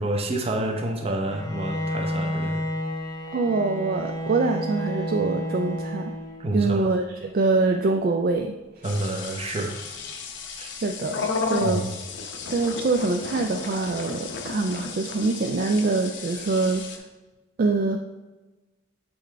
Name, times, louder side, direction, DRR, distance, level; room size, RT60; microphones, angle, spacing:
voice 1, 0.0-2.7 6.4-6.9 8.8-9.8 10.6-10.7 11.6-12.0, right 1 dB, 30° right, 3 dB, 0.7 m, -28 dB
Bowed string instrument, 1.3-6.6, equal, 20° left, 0.7 m, -30 dB
voice 2, 3.3-6.1 6.5-8.8 10.8-11.9 12.5-16.8 17.6-18.0, right 3 dB, 45° right, 4 dB, 0.3 m, -24 dB
sound 1, 8.8-17.0, left 4 dB, 60° left, 0.7 m, -33 dB
7.0 x 4.5 x 3.3 m, 1.2 s
head